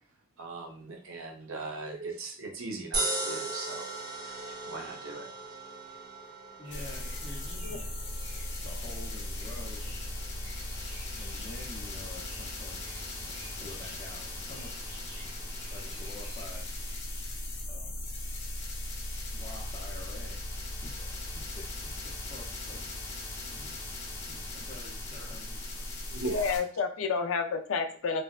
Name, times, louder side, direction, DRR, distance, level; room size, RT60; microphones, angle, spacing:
voice 1, 0.4-3.9 4.2-5.3 26.1-26.6, right 3 dB, 80° right, 1 dB, 0.7 m, -39 dB
sound 1, 2.9-15.3, right 2 dB, 20° right, 0.7 m, -40 dB
voice 2, 6.6-7.9 8.6-10.0 11.2-12.9 13.1-14.8 15.7-16.7 17.7-18.1 19.3-20.5 20.8-23.9 24.3-25.9, left 2 dB, 25° left, -7 dB, 0.6 m, -48 dB
sound 2, 6.6-17.0, right 2 dB, 55° right, 1.0 m, -52 dB
sound 3, 6.7-26.6, left 1 dB, 55° left, 0.8 m, -38 dB
voice 3, 26.2-28.2, left 5 dB, 75° left, 6 dB, 0.4 m, -30 dB
3.3 x 2.1 x 2.3 m, 0.42 s
head